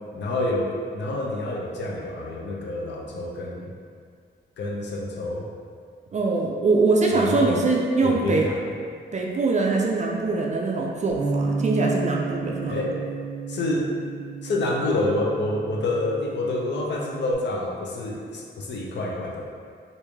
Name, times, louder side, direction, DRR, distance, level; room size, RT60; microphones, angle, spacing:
voice 1, 0.1-3.7 4.6-5.5 7.1-7.6 8.0-8.6 12.7-13.0 13.5-13.9 14.4-19.4, left 2 dB, 75° left, -2 dB, 0.6 m, -27 dB
voice 2, 6.1-8.5 9.1-12.8, right 3 dB, 40° right, -1 dB, 0.4 m, -23 dB
Bass guitar, 11.1-17.3, right 4 dB, 15° left, 0.9 m, -32 dB
3.1 x 2.6 x 3.5 m, 2.2 s
wide cardioid pair, 115°, 19 cm